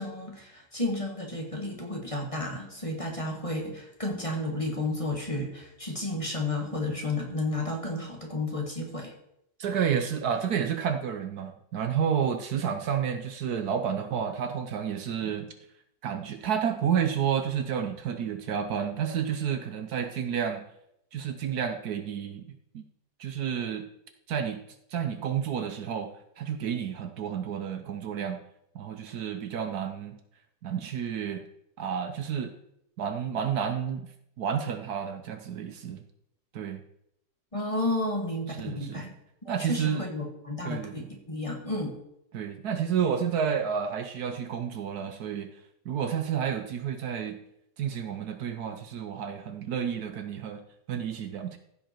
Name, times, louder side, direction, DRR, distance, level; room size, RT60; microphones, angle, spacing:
voice 1, 0.0-9.1 37.5-39.1 39.4-41.9, left 2 dB, 20° left, 1 dB, 1.5 m, -32 dB
voice 2, 9.6-15.5 16.0-20.7 21.1-22.4 22.7-22.8 23.2-23.9 24.3-24.6 24.9-26.1 26.4-28.4 28.7-30.2 30.6-31.4 31.8-32.5 33.0-34.1 34.4-36.0 36.5-36.8 38.5-39.1 39.5-40.1 40.6-41.1 42.3-45.5 45.8-47.4 47.8-50.6 50.9-51.6, right 8 dB, 65° right, 7 dB, 1.2 m, -30 dB
15.0 x 5.4 x 4.5 m, 0.78 s
omnidirectional pair, 1.9 m